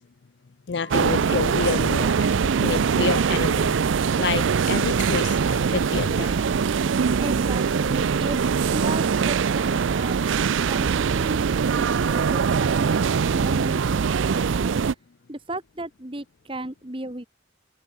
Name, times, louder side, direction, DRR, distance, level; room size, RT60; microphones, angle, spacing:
voice 1, 0.7-3.8 4.2-6.4, left 5 dB, 65° left, 0.5 m, -29 dB
sound 1, 0.7-13.5, right 4 dB, 70° right, 6.1 m, -50 dB
sound 2, 0.9-14.9, right 6 dB, 90° right, 0.5 m, -22 dB
voice 2, 7.2-10.2 10.7-13.9 14.2-14.8 15.3-17.3, right 1 dB, 30° right, 1.8 m, -35 dB
head